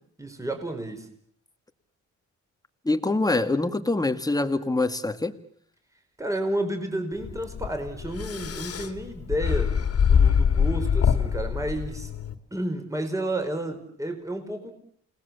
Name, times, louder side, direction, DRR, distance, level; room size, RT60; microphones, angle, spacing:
voice 1, 0.2-1.1 6.2-9.7 10.0-12.1 12.5-14.7, right 1 dB, 10° right, 5 dB, 5.0 m, -31 dB
voice 2, 2.9-5.3, left 2 dB, 10° left, 8 dB, 2.1 m, -24 dB
sound 1, 7.2-12.3, left 7 dB, 50° left, 2.6 m, -24 dB
29.0 x 19.5 x 7.2 m, 0.64 s
cardioid pair, 90°, 30 cm